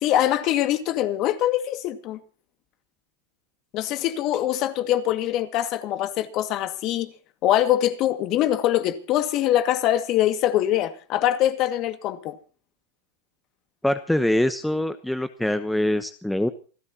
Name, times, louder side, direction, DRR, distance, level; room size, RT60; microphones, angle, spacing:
voice 1, 0.0-2.2 3.7-7.1 7.4-12.4, left 12 dB, 45° left, 2.1 m, -23 dB
voice 2, 13.8-16.5, left 1 dB, 5° left, 1.0 m, -24 dB
27.5 x 13.5 x 2.9 m
supercardioid pair, 135°, 0 cm